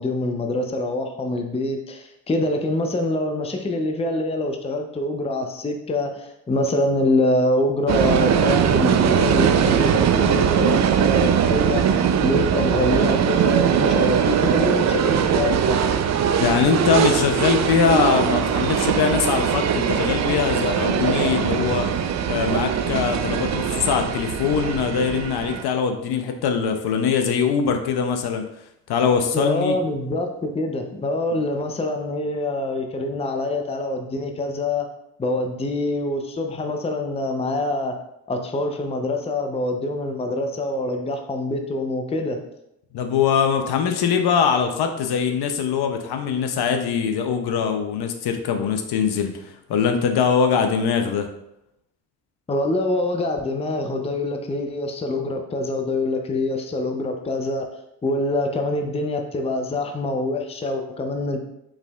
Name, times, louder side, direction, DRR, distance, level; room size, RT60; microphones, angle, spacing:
voice 1, 0.0-11.9 12.2-15.8 29.3-34.9 35.2-38.0 38.3-42.4 52.5-57.7 58.0-61.4, left 2 dB, 15° left, 4 dB, 0.5 m, -25 dB
sound 1, 7.9-25.6, right 8 dB, 40° right, 0.4 m, -21 dB
voice 2, 16.4-21.9 22.3-28.5 28.9-29.8 42.9-51.3, left 6 dB, 55° left, 6 dB, 0.6 m, -22 dB
4.8 x 3.3 x 2.3 m, 0.80 s
hypercardioid pair, 55°, 46 cm